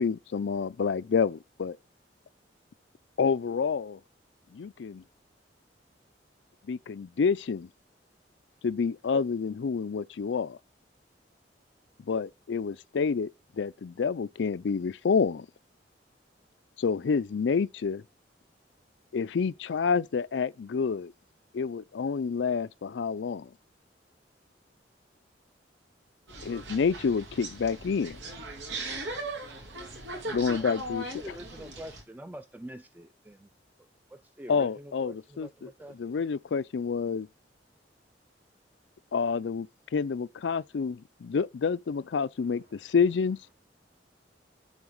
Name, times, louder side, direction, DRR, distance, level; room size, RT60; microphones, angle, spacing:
voice 1, 0.0-1.8 3.2-4.0 4.5-5.0 6.7-7.7 8.6-10.6 12.1-13.3 13.5-15.5 16.8-18.0 19.1-21.1 21.5-23.5 26.4-28.2 30.2-31.1 34.5-35.7 36.0-37.3 39.1-39.7 39.9-43.4, left 5 dB, 75° left, 0.4 m, -28 dB
sound 1, 26.3-32.0, right 2 dB, 85° right, 2.4 m, -39 dB
voice 2, 31.2-33.5 33.8-36.2, equal, 10° right, 0.4 m, -46 dB
voice 3, 42.4-43.5, right 1 dB, 50° right, 4.5 m, -65 dB
11.0 x 3.9 x 6.4 m
head